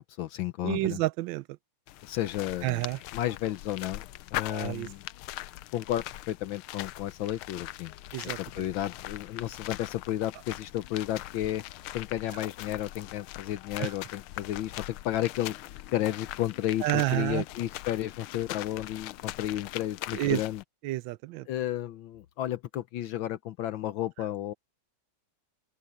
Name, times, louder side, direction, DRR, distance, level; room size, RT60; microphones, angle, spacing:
voice 1, 0.0-1.0 2.0-2.8 3.1-5.1 5.7-7.9 8.4-11.6 11.9-15.5 15.9-20.6 21.5-24.5, left 13 dB, 75° left, 1.4 m, -32 dB
voice 2, 0.6-1.4 2.6-3.0 4.5-4.9 8.1-8.4 13.8-13.9 16.8-17.4 20.1-20.4 20.8-21.5, right 18 dB, 75° right, 1.2 m, -29 dB
sound 1, 1.9-20.6, left 16 dB, 90° left, 1.5 m, -41 dB
omnidirectional pair, 2.3 m